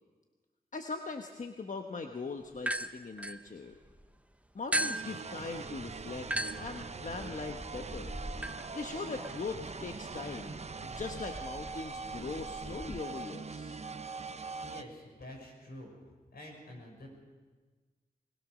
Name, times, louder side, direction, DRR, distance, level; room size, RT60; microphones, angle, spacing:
voice 1, 0.7-3.7 4.5-8.1 8.7-13.8, left 4 dB, 55° left, 4 dB, 1.3 m, -41 dB
sound 1, 2.6-4.1 4.7-13.0, right 1 dB, 10° right, 0.9 m, -40 dB
sound 2, 4.7-14.8, right 4 dB, 45° right, 0.9 m, -42 dB
voice 2, 14.6-15.9 16.3-17.1, left 1 dB, 80° left, 1 dB, 6.4 m, -48 dB
21.5 x 20.0 x 6.4 m, 1.4 s
cardioid pair, 55°, 16 cm